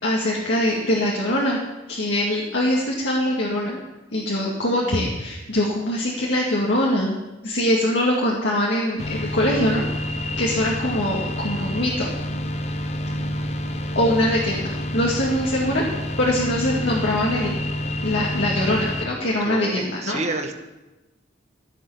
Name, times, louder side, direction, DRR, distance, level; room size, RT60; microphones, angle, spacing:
voice 1, 0.0-1.6 1.9-3.8 4.1-7.2 7.4-9.8 10.4-12.1 14.0-15.8 16.2-17.6 18.0-20.2, left 1 dB, 80° left, -4 dB, 2.3 m, -23 dB
sound 1, 9.0-19.1, left 1 dB, 35° left, 1.0 m, -28 dB
voice 2, 19.4-20.5, right 2 dB, 40° right, 5 dB, 1.4 m, -29 dB
16.0 x 6.7 x 8.6 m, 1.1 s
head